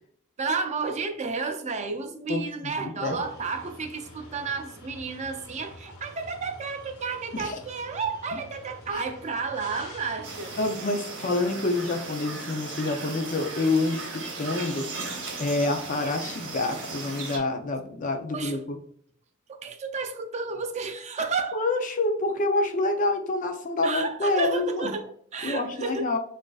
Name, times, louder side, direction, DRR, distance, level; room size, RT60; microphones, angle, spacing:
voice 1, 0.4-10.5 18.3-18.6 19.5-21.6 23.8-26.1, right 4 dB, 30° right, 6 dB, 0.4 m, -32 dB
voice 2, 2.3-3.2 7.3-7.6 8.3-8.4 8.9-9.0 10.6-14.9 15.4-18.8 21.5-24.9 25.4-26.2, left 2 dB, 35° left, 5 dB, 0.5 m, -27 dB
sound 1, 3.1-10.7, left 1 dB, 75° left, 1.0 m, -47 dB
sound 2, 10.2-17.4, right 3 dB, 60° right, 1.0 m, -37 dB
6.2 x 2.5 x 2.3 m, 0.62 s
head